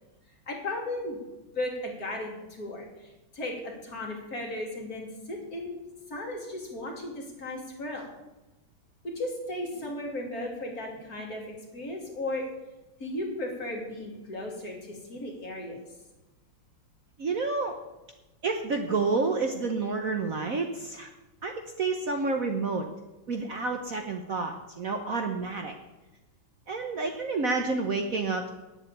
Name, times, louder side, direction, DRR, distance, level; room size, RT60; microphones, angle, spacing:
voice 1, 0.5-1.2 1.5-5.8 6.1-8.1 9.0-12.5 13.0-15.8, left 1 dB, 45° left, -1 dB, 3.0 m, -35 dB
voice 2, 17.2-17.8 18.4-21.1 21.4-22.9 23.3-25.7 26.7-28.5, right 3 dB, 50° right, 4 dB, 1.2 m, -29 dB
9.9 x 7.8 x 8.5 m, 1.1 s
omnidirectional pair, 2.2 m